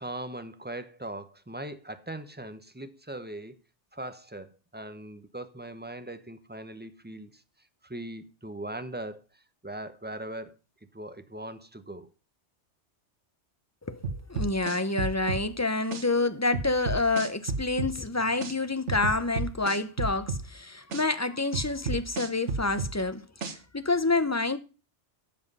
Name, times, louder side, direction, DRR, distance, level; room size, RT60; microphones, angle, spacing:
voice 1, 0.0-3.6 3.9-7.4 7.8-10.5 10.9-12.1, right 1 dB, 10° right, 0.8 m, -40 dB
sound 1, 14.0-15.4 15.9-16.0 16.5-17.9 18.4-18.5 18.9-20.4 20.9-21.0 21.5-22.9 23.4-23.5, right 4 dB, 85° right, 1.6 m, -31 dB
voice 2, 14.3-24.6, left 3 dB, 20° left, 0.6 m, -28 dB
13.0 x 7.8 x 5.4 m
omnidirectional pair, 1.2 m